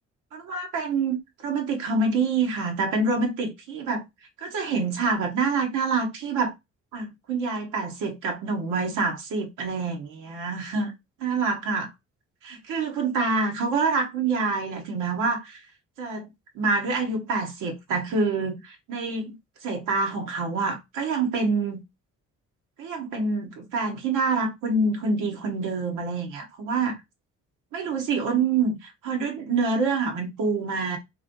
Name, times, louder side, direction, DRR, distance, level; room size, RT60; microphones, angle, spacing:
voice 1, 0.3-4.0 4.4-6.5 6.9-10.9 11.2-11.9 12.4-15.6 16.0-16.3 16.5-19.4 19.6-21.8 22.8-27.0 27.7-31.0, right 4 dB, 90° right, 1.1 m, -26 dB
3.2 x 2.6 x 3.7 m
cardioid pair, 90°, 30 cm